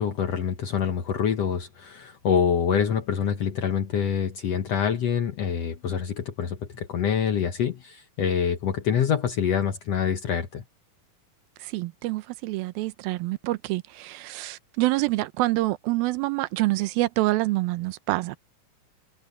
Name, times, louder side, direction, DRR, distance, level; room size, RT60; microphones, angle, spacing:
voice 1, 0.0-10.6, left 7 dB, 65° left, 1.7 m, -26 dB
voice 2, 11.6-18.4, right 19 dB, 85° right, 2.6 m, -26 dB
omnidirectional pair, 4.2 m